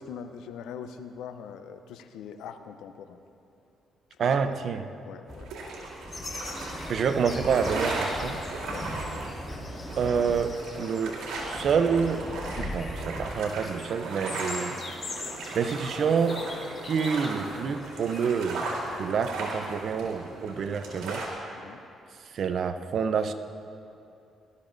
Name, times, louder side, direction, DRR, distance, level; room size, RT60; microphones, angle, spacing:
voice 1, 0.0-3.2 4.2-4.6 5.0-5.5 8.7-8.9 21.6-21.8, left 7 dB, 85° left, 9 dB, 0.6 m, -42 dB
voice 2, 4.2-4.8 6.9-8.4 10.0-12.3 12.6-14.8 15.5-16.4 16.8-18.7 19.0-21.2 22.3-23.3, right 6 dB, 60° right, 9 dB, 0.6 m, -27 dB
sound 1, 5.3-13.3, left 1 dB, 10° left, 1.6 m, -39 dB
sound 2, 5.3-21.3, right 2 dB, 85° right, 2.6 m, -36 dB
sound 3, 6.1-18.4, left 3 dB, 40° left, 1.3 m, -44 dB
19.0 x 13.0 x 2.6 m, 2.6 s
cardioid pair, 90°, 0 cm